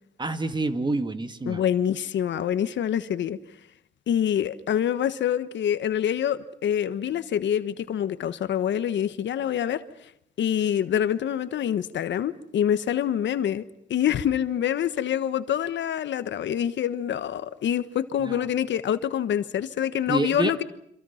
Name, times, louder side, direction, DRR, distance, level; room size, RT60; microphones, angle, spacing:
voice 1, 0.2-1.6 18.2-18.4 20.1-20.5, right 2 dB, 20° right, 1.9 m, -27 dB
voice 2, 1.5-3.4 4.1-9.8 10.4-13.6 13.9-20.6, left 10 dB, 65° left, 1.3 m, -26 dB
27.0 x 26.5 x 5.8 m
cardioid pair, 90°, 20 cm